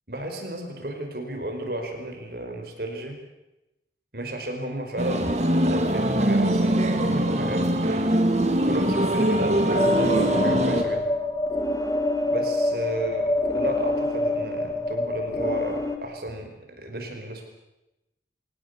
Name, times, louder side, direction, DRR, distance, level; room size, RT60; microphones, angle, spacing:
voice 1, 0.1-3.2 4.1-8.2 8.6-11.1 12.3-17.4, right 1 dB, 55° right, 4 dB, 5.2 m, -33 dB
sound 1, 5.0-10.8, right 1 dB, 40° right, 2.6 m, -22 dB
sound 2, 9.7-16.0, left 2 dB, 20° left, 2.0 m, -26 dB
24.0 x 18.5 x 8.4 m, 0.94 s
head